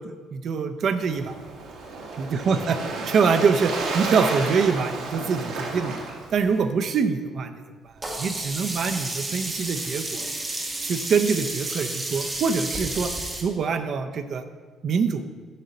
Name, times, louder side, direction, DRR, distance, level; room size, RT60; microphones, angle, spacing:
voice 1, 0.0-1.3 2.2-2.8 3.1-5.9 6.3-7.5 8.2-10.2 10.8-13.1 13.4-14.4 14.8-15.2, right 5 dB, 45° right, 8 dB, 0.5 m, -24 dB
Waves surf, 0.9-6.6, right 3 dB, 75° right, 1.3 m, -32 dB
Sink (filling or washing), 8.0-13.4, right 2 dB, 15° right, 0.8 m, -31 dB
8.3 x 4.0 x 6.4 m, 1.5 s
cardioid pair, 180°, 0 cm